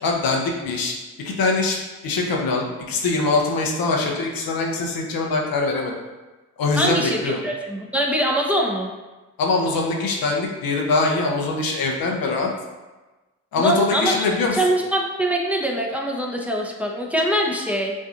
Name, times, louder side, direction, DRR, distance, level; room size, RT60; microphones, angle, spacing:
voice 1, 0.0-0.9 1.2-5.9 6.6-7.4 9.4-12.5 13.5-14.6, left 3 dB, 65° left, 0 dB, 0.9 m, -23 dB
voice 2, 6.8-8.9 13.6-14.1 14.5-17.9, right 1 dB, 5° right, -1 dB, 0.9 m, -23 dB
7.2 x 2.6 x 2.6 m, 1.2 s
hypercardioid pair, 45°, 38 cm